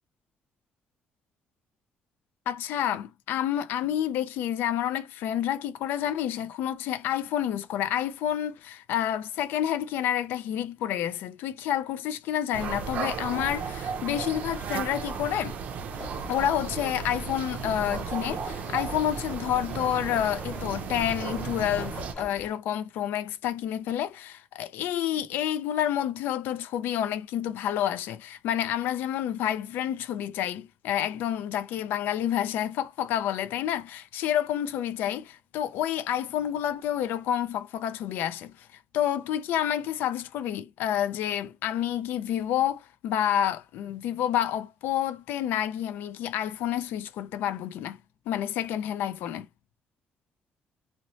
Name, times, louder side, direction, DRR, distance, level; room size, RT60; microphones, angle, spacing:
voice 1, 2.5-15.6 16.3-48.0 48.3-49.5, left 10 dB, 85° left, 0.3 m, -29 dB
sound 1, 12.5-22.1, right 6 dB, 50° right, 0.4 m, -34 dB
sound 2, 15.9-22.5, left 1 dB, 30° left, 1.0 m, -44 dB
2.7 x 2.1 x 2.9 m
cardioid pair, 170°, 3 cm